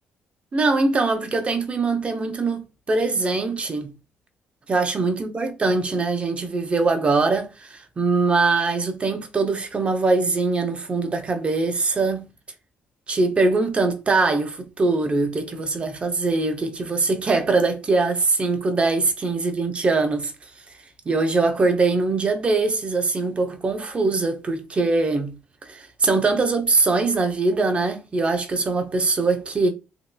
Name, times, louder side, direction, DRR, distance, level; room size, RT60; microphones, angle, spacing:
voice 1, 0.5-3.9 4.7-12.2 13.1-20.3 21.1-25.3 25.7-29.7, right 3 dB, 30° right, 0.6 m, -22 dB
3.0 x 2.9 x 2.2 m
cardioid pair, 110°, 4 cm